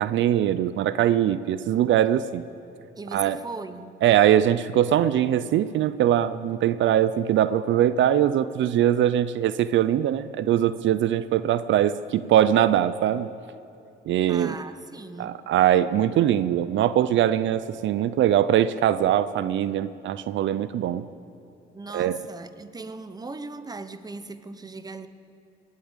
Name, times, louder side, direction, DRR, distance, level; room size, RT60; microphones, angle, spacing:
voice 1, 0.0-2.4 3.1-3.4 4.0-13.3 14.1-14.5 15.2-21.0 21.9-22.2, right 11 dB, 70° right, 14 dB, 0.5 m, -22 dB
voice 2, 3.0-4.0 14.3-15.4 21.7-25.1, right 3 dB, 20° right, 11 dB, 0.9 m, -38 dB
19.0 x 8.5 x 9.0 m, 2.7 s
cardioid pair, 90°, 20 cm